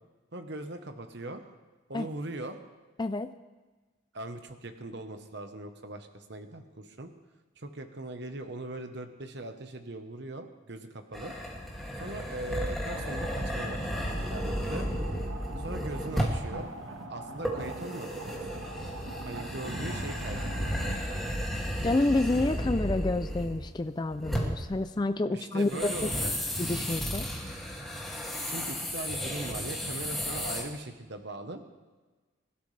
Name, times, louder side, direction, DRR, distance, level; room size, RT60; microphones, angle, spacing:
voice 1, 0.3-1.5 1.9-2.6 4.1-7.1 7.6-11.3 12.0-14.9 15.6-16.7 17.1-18.6 19.2-20.8 21.0-21.4 25.3-26.3 28.4-31.6, right 2 dB, 60° right, 7 dB, 1.1 m, -40 dB
voice 2, 3.0-3.3 21.8-26.1 26.6-27.3, left 2 dB, 20° left, 10 dB, 0.4 m, -29 dB
sound 1, 11.1-16.5 17.4-23.8 24.1-24.7 25.6-30.6, equal, ahead, 2.4 m, -34 dB
sound 2, 12.9-21.0, right 1 dB, 90° right, 1.6 m, -42 dB
24.5 x 13.0 x 3.3 m, 1.3 s
head